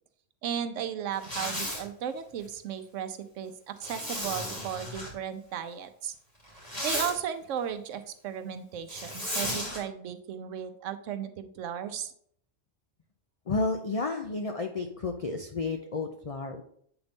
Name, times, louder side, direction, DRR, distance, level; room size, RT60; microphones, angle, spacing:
voice 1, 0.4-6.1 6.8-12.1, right 8 dB, 80° right, 10 dB, 1.0 m, -35 dB
Zipper (clothing), 1.1-1.8 3.8-5.1 6.4-7.1 8.9-9.8, left 1 dB, 30° left, 2.7 m, -34 dB
voice 2, 13.5-16.6, left 3 dB, 65° left, 4 dB, 0.3 m, -31 dB
8.0 x 3.9 x 3.5 m, 0.65 s
omnidirectional pair, 1.3 m